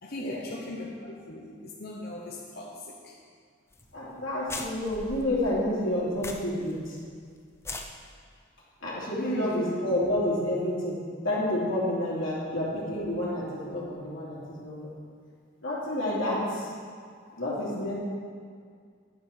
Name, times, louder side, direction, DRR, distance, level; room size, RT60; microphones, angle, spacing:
voice 1, 0.0-3.2 9.2-9.7 17.3-17.4, left 1 dB, 50° left, -2 dB, 0.9 m, -38 dB
sound 1, 3.7-3.9 4.1-4.2 4.5-6.7 7.0-7.1 7.5-7.9, left 2 dB, 15° left, 0.6 m, -39 dB
voice 2, 3.9-7.0 8.8-11.0 11.2-14.9 15.6-16.7 17.4-17.9, left 1 dB, 80° left, -8 dB, 2.9 m, -29 dB
9.8 x 7.3 x 5.9 m, 2.1 s
head